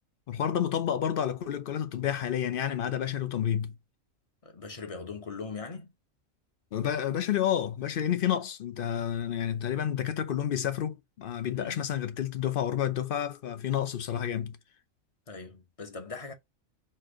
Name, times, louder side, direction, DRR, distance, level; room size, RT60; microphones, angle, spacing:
voice 1, 0.3-3.8 6.7-14.6, left 10 dB, 55° left, 0.6 m, -30 dB
voice 2, 4.4-5.9 11.5-11.9 15.3-16.3, left 4 dB, 30° left, 0.8 m, -40 dB
4.4 x 2.5 x 4.7 m
omnidirectional pair, 1.4 m